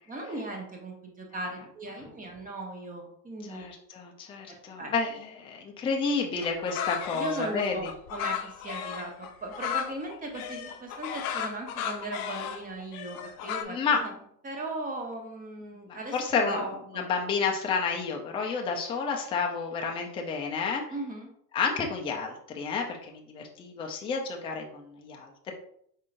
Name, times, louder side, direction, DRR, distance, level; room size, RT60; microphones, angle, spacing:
voice 1, 0.1-3.7 4.5-4.9 7.1-14.1 14.4-16.2 16.5-17.1 20.9-21.3, right 2 dB, 15° right, 2 dB, 0.9 m, -38 dB
voice 2, 3.5-7.9 13.6-14.1 15.8-16.6 16.9-20.8 21.5-25.5, left 5 dB, 10° left, 1 dB, 0.4 m, -30 dB
sound 1, 6.4-13.6, left 9 dB, 60° left, 0.6 m, -35 dB
4.5 x 3.6 x 2.5 m, 0.66 s
hypercardioid pair, 110°, 49 cm